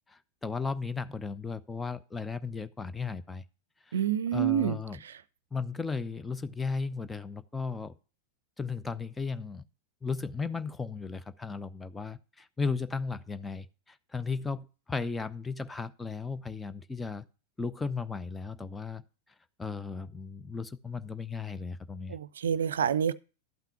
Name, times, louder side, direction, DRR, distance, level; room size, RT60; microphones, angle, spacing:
voice 1, 0.1-3.4 3.8-4.0 4.3-5.0 5.5-7.9 8.6-9.6 10.0-17.2 17.6-19.0 19.6-22.2, left 4 dB, 10° left, 0.6 m, -35 dB
voice 2, 3.9-4.8 22.1-23.1, right 9 dB, 65° right, 0.5 m, -27 dB
12.0 x 5.8 x 5.9 m
figure-of-eight pair, 90°, 0 cm